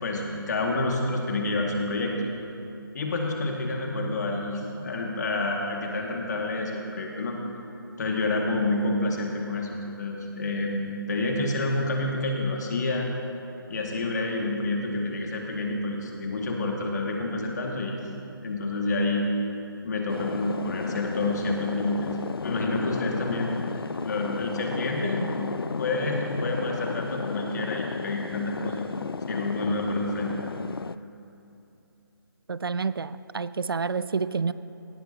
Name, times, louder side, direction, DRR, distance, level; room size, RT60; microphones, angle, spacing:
voice 1, 0.0-2.2 2.9-7.3 8.0-10.8 11.1-13.1 13.7-18.0 18.4-19.3 19.8-22.1 22.4-25.3 25.8-28.9 29.3-30.3, left 2 dB, 50° left, 0 dB, 2.0 m, -28 dB
sound 1, 20.1-31.0, left 5 dB, 80° left, 0.4 m, -34 dB
voice 2, 32.5-34.5, right 5 dB, 75° right, 15 dB, 0.4 m, -29 dB
17.5 x 12.5 x 2.8 m, 2.8 s
figure-of-eight pair, 150°, 12 cm